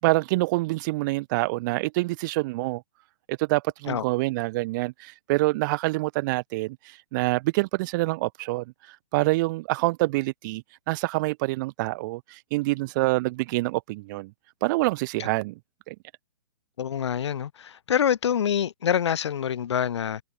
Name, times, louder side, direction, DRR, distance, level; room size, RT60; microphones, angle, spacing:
voice 1, 0.0-2.8 3.3-14.3 14.6-15.5 15.9-16.0, right 22 dB, 40° right, 5.1 m, -26 dB
voice 2, 16.8-20.2, left 9 dB, 65° left, 5.0 m, -26 dB
hypercardioid pair, 135°, 16 cm